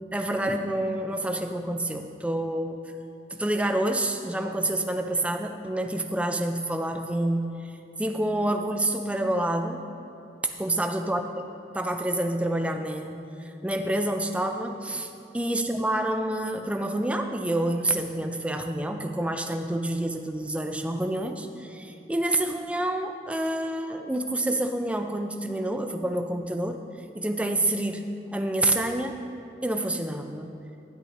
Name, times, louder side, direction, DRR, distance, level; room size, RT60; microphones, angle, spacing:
voice 1, 0.1-2.8 3.3-7.7 8.0-9.8 10.6-11.2 11.8-26.8 27.1-28.0 28.3-29.2 29.6-30.6, right 1 dB, 5° right, 5 dB, 0.4 m, -28 dB
13.0 x 10.0 x 2.6 m, 2.7 s
head